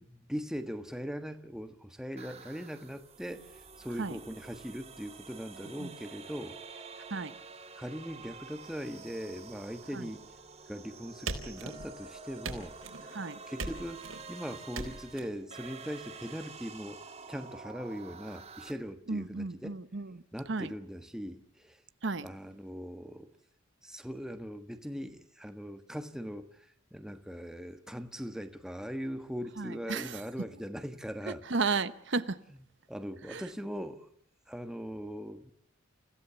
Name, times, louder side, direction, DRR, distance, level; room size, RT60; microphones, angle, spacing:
voice 1, 0.0-6.6 7.7-10.2 10.7-12.8 13.5-17.0 17.3-19.8 20.3-21.8 22.2-23.3 23.8-31.4 32.5-32.6 32.9-34.1 34.5-35.5, equal, 5° right, 1.4 m, -40 dB
sound 1, 2.2-18.7, right 4 dB, 30° right, 2.7 m, -49 dB
sound 2, 11.3-12.0 12.4-13.1 13.6-14.2 14.7-15.2, right 3 dB, 80° right, 4.2 m, -39 dB
voice 2, 19.1-20.1 20.5-20.7 22.0-22.2 29.6-30.1 31.5-32.4 33.3-33.4, right 4 dB, 60° right, 0.9 m, -33 dB
29.5 x 17.0 x 7.1 m
head